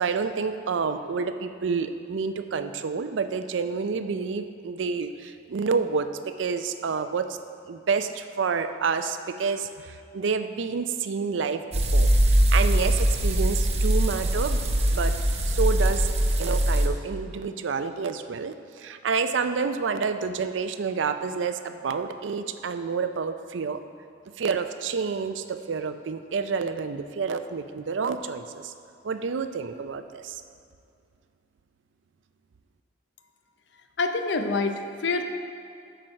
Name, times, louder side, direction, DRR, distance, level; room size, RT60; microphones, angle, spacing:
voice 1, 0.0-7.4 7.7-11.6 11.9-14.6 14.9-15.2 15.5-16.1 16.4-23.8 24.4-28.7 29.0-30.4, right 5 dB, 85° right, 9 dB, 0.4 m, -29 dB
sound 1, 11.7-16.9, right 1 dB, 35° right, 0.7 m, -22 dB
voice 2, 34.0-35.2, left 3 dB, 70° left, 6 dB, 0.6 m, -26 dB
8.7 x 4.5 x 6.2 m, 2.5 s
head